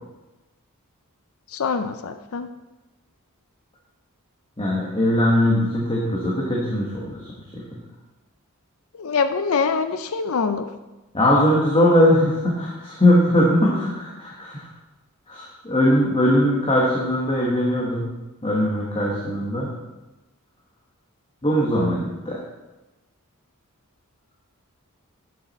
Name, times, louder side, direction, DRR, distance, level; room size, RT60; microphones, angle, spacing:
voice 1, 1.5-2.5 8.9-10.7, left 5 dB, 65° left, 9 dB, 0.5 m, -24 dB
voice 2, 4.6-7.2 11.1-14.7 15.3-18.1 18.4-19.7 21.4-22.4, left 1 dB, 25° left, -4 dB, 1.3 m, -20 dB
8.5 x 7.4 x 4.1 m, 1.1 s
head